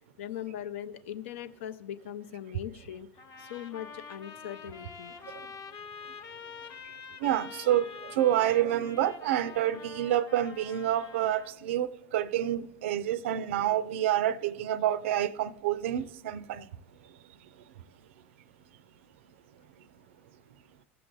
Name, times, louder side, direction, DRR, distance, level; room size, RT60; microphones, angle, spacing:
voice 1, 0.2-3.1 3.4-5.1, left 10 dB, 65° left, 0.6 m, -40 dB
sound 1, 3.2-11.5, left 6 dB, 40° left, 1.0 m, -46 dB
voice 2, 7.2-16.7, right 12 dB, 65° right, 0.5 m, -28 dB
16.0 x 6.8 x 3.8 m
hypercardioid pair, 85°, 7 cm